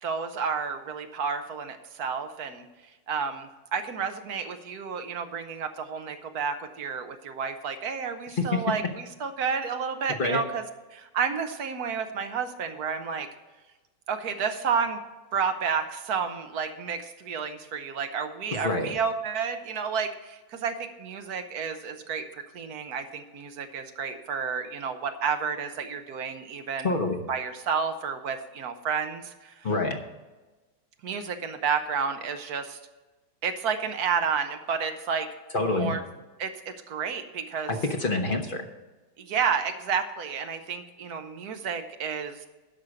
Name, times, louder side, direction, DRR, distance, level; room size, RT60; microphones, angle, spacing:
voice 1, 0.0-2.6 3.1-10.6 10.9-13.3 14.1-15.0 15.3-26.9 27.3-29.7 31.0-32.8 33.4-35.3 35.8-36.0 36.4-37.7 39.2-42.5, right 6 dB, 60° right, 8 dB, 1.1 m, -31 dB
voice 2, 8.3-8.6 10.1-10.4 18.5-19.0 26.8-27.2 29.6-30.0 35.5-35.9 37.7-38.7, left 2 dB, 65° left, 3 dB, 0.5 m, -27 dB
10.5 x 6.1 x 6.4 m, 1.2 s
omnidirectional pair, 2.2 m